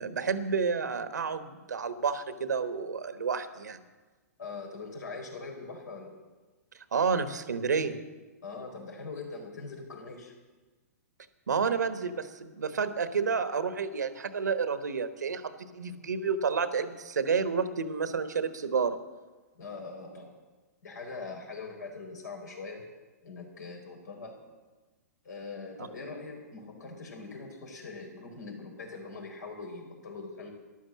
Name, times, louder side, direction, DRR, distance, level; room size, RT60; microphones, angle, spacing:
voice 1, 0.0-3.8 6.9-8.0 11.5-19.0, right 5 dB, 80° right, 11 dB, 1.2 m, -30 dB
voice 2, 4.4-6.1 8.4-10.3 19.5-20.3 20.8-22.9 23.2-24.4 25.2-30.5, left 4 dB, 75° left, 2 dB, 4.6 m, -42 dB
13.5 x 11.5 x 7.4 m, 1.3 s
hypercardioid pair, 120°, 9 cm